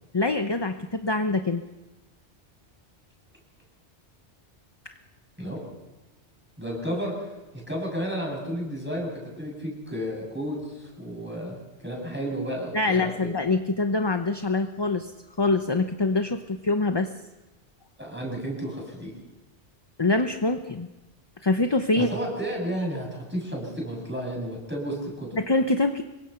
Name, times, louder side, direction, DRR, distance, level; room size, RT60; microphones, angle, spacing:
voice 1, 0.1-1.6 12.7-15.1 15.4-17.1 20.0-20.9 21.4-22.1 25.4-26.0, left 2 dB, 25° left, 7 dB, 0.8 m, -24 dB
voice 2, 6.6-7.3 7.7-13.1 18.0-19.1 22.0-25.3, equal, 10° right, -1 dB, 7.7 m, -32 dB
26.5 x 23.0 x 5.8 m, 1.1 s
omnidirectional pair, 1.2 m